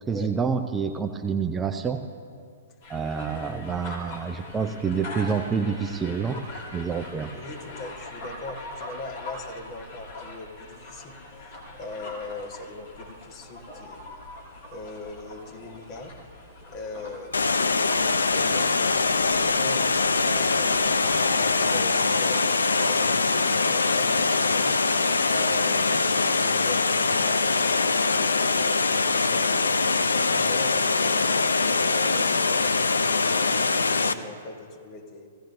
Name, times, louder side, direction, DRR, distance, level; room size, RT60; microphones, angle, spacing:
voice 1, 0.1-2.0 2.9-6.4 6.7-7.3, right 6 dB, 15° right, 6 dB, 0.5 m, -27 dB
sound 1, 2.8-21.8, left 2 dB, 50° left, 2.9 m, -42 dB
voice 2, 7.3-14.1 14.6-16.2 16.7-17.9 18.3-20.8 21.1-22.5 22.7-24.8 25.2-27.6 28.0-28.9 29.1-29.7 30.3-35.3, left 2 dB, 35° left, 3 dB, 1.4 m, -41 dB
Water, 17.3-34.1, left 4 dB, 80° left, 0.5 m, -23 dB
sound 2, 20.2-26.1, right 3 dB, 90° right, 0.9 m, -40 dB
17.0 x 15.5 x 2.7 m, 2.3 s
figure-of-eight pair, 115°, 0 cm